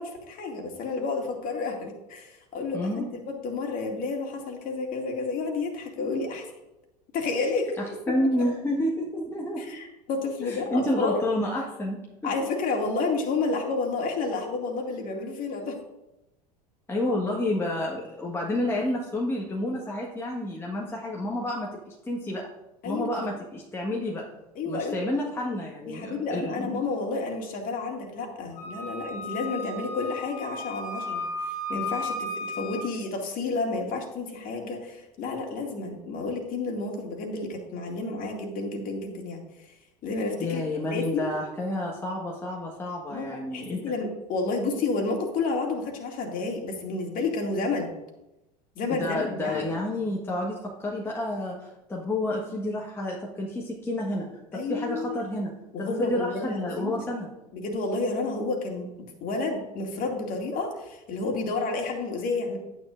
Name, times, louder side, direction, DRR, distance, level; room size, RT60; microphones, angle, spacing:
voice 1, 0.0-6.5 7.1-7.7 9.6-11.2 12.2-15.8 22.8-23.3 24.6-25.0 25.9-39.7 40.0-40.6 40.9-41.3 43.1-47.9 48.8-49.7 54.5-55.2 55.7-57.0 57.5-62.6, left 3 dB, 40° left, 2 dB, 2.3 m, -30 dB
voice 2, 2.7-3.1 8.1-9.8 10.4-12.3 16.9-22.5 22.8-24.2 24.6-26.9 40.4-43.8 48.9-55.5 55.8-57.3, left 1 dB, 10° left, -3 dB, 1.5 m, -30 dB
Wind instrument woodwind instrument, 28.6-32.9, left 2 dB, 70° left, 1.7 m, -34 dB
11.5 x 9.3 x 2.6 m, 0.93 s
figure-of-eight pair, 80°, 21 cm